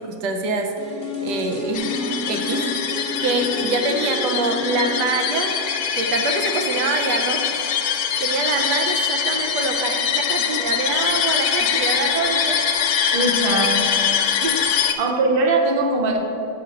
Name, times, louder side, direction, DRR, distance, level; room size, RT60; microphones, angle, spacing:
voice 1, 0.0-2.0 2.3-2.9 3.2-5.5 5.9-7.5 8.2-12.6 14.4-14.7, right 3 dB, 75° right, 4 dB, 1.2 m, -25 dB
sound 1, 0.8-6.7 7.0-7.1, left 2 dB, 40° left, 0.9 m, -31 dB
sound 2, 1.7-14.9, left 7 dB, 75° left, 1.1 m, -23 dB
voice 2, 13.1-13.9 15.0-16.2, right 2 dB, 45° right, 2 dB, 0.8 m, -20 dB
5.6 x 5.2 x 6.3 m, 2.8 s
omnidirectional pair, 1.9 m